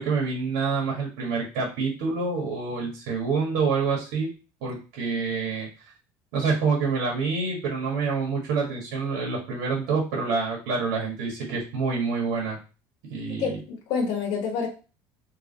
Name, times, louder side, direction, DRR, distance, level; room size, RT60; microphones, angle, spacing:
voice 1, 0.0-4.3 4.6-5.7 6.3-12.6 13.1-13.6, right 4 dB, 75° right, -1 dB, 1.6 m, -27 dB
voice 2, 13.3-14.7, left 5 dB, 65° left, -1 dB, 1.2 m, -28 dB
3.5 x 3.3 x 4.0 m, 0.34 s
cardioid pair, 180°, 8 cm